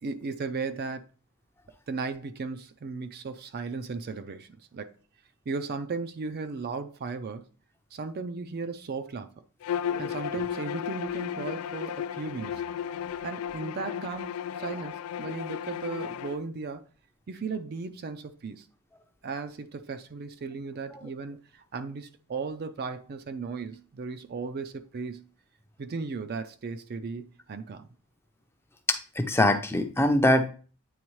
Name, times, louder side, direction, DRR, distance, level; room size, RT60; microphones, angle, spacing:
voice 1, 0.0-1.0 1.9-5.0 5.5-7.5 7.9-9.3 10.0-12.6 13.2-16.8 17.3-18.7 19.2-25.2 25.8-27.9, right 4 dB, 45° right, 0.4 m, -36 dB
Bowed string instrument, 9.6-16.4, left 9 dB, 85° left, 0.3 m, -34 dB
voice 2, 28.9-30.5, left 1 dB, 10° left, 0.5 m, -23 dB
8.7 x 3.5 x 3.1 m
head